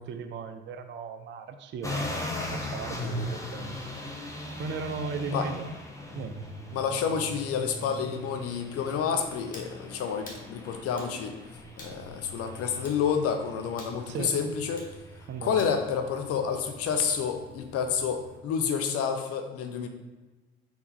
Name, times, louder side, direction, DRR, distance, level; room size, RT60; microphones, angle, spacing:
voice 1, 0.0-2.2 2.5-3.8 4.6-5.7 6.1-6.4 14.1-14.4 15.3-15.6, right 5 dB, 40° right, 8 dB, 0.5 m, -36 dB
sound 1, 1.8-18.4, left 1 dB, 10° left, 0.8 m, -39 dB
voice 2, 6.7-11.3 11.8-14.9 15.4-19.9, left 7 dB, 50° left, 6 dB, 0.8 m, -29 dB
sound 2, 9.5-9.7 10.3-10.5 11.0-11.2 11.8-12.0 12.8-13.0 13.8-14.0 14.8-14.9 15.6-15.8, left 1 dB, 25° left, 1.3 m, -46 dB
4.4 x 2.7 x 4.1 m, 1.2 s
hypercardioid pair, 60°, 30 cm